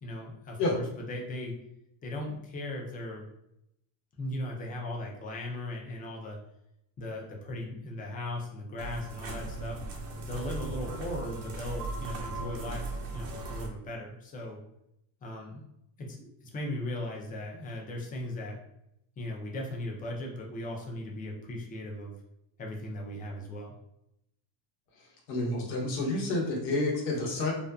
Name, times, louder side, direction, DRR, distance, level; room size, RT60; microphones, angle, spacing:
voice 1, 0.0-1.5 2.0-3.3 4.2-6.4 7.0-9.8 10.2-12.8 13.1-14.6 15.2-15.6 16.0-18.6 19.2-22.1 22.6-23.7, left 1 dB, 20° left, 0 dB, 0.3 m, -38 dB
sound 1, 8.8-13.7, right 2 dB, 90° right, 0.7 m, -37 dB
voice 2, 25.3-27.5, left 2 dB, 90° left, -2 dB, 1.0 m, -29 dB
2.5 x 2.2 x 2.3 m, 0.80 s
cardioid pair, 120°, 48 cm